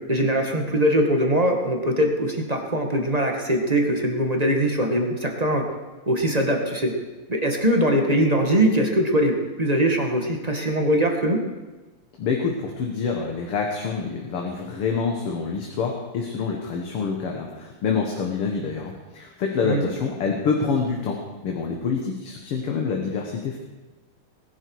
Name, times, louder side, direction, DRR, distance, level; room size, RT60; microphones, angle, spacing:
voice 1, 0.1-5.6 6.1-6.9 7.3-11.4 19.6-19.8, equal, 20° right, 2 dB, 1.5 m, -22 dB
voice 2, 12.2-23.6, left 5 dB, 85° left, 1 dB, 2.3 m, -26 dB
20.0 x 11.0 x 4.8 m, 1.2 s
omnidirectional pair, 2.4 m